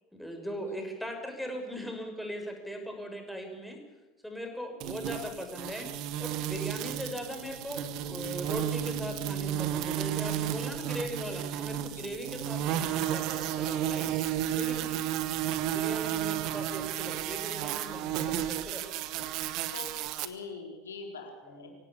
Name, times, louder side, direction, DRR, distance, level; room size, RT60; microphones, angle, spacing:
voice 1, 0.1-3.8 4.2-5.9 6.2-14.1 14.6-15.0 15.7-18.8 19.1-19.2 21.4-21.7, equal, ahead, 3 dB, 6.0 m, -39 dB
sound 1, 4.8-20.3, right 11 dB, 50° right, 1.5 m, -32 dB
voice 2, 19.7-21.8, left 4 dB, 75° left, 2 dB, 4.5 m, -43 dB
24.5 x 17.0 x 8.6 m, 1.2 s
figure-of-eight pair, 80°, 0 cm